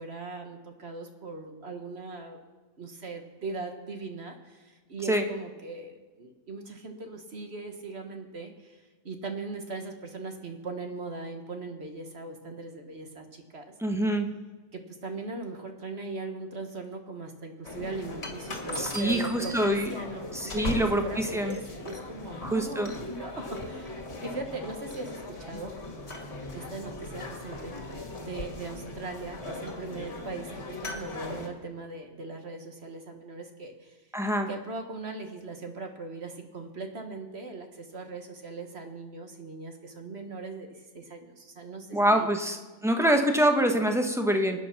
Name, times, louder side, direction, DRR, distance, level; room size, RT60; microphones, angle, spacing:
voice 1, 0.0-2.4 2.8-13.7 14.7-24.0 24.2-25.8 26.5-34.1 34.5-42.3, right 3 dB, 50° right, 5 dB, 1.6 m, -40 dB
voice 2, 13.8-14.3 18.8-19.9 20.4-21.6 22.4-22.9 34.1-34.5 41.9-42.6 42.8-44.7, right 1 dB, ahead, 4 dB, 1.0 m, -25 dB
sound 1, 17.6-31.5, left 2 dB, 50° left, 2.2 m, -39 dB
25.5 x 9.4 x 5.9 m, 1.3 s
omnidirectional pair, 1.4 m